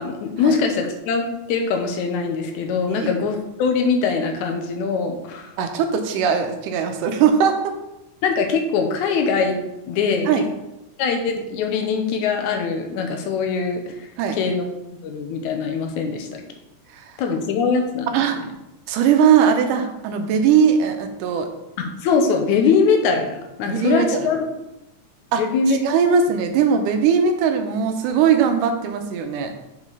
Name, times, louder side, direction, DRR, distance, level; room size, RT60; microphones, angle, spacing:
voice 1, 0.0-5.5 8.2-10.4 11.0-14.1 14.4-14.7 15.0-16.4 17.2-18.1 21.8-24.5 25.4-25.8, left 5 dB, 75° left, 4 dB, 2.2 m, -22 dB
voice 2, 5.6-7.7 10.3-10.4 14.2-14.4 16.9-17.1 18.1-18.4 18.9-21.5 23.7-24.3 25.3-29.5, right 7 dB, 85° right, 6 dB, 2.4 m, -20 dB
6.6 x 5.1 x 5.4 m, 0.93 s
omnidirectional pair, 3.6 m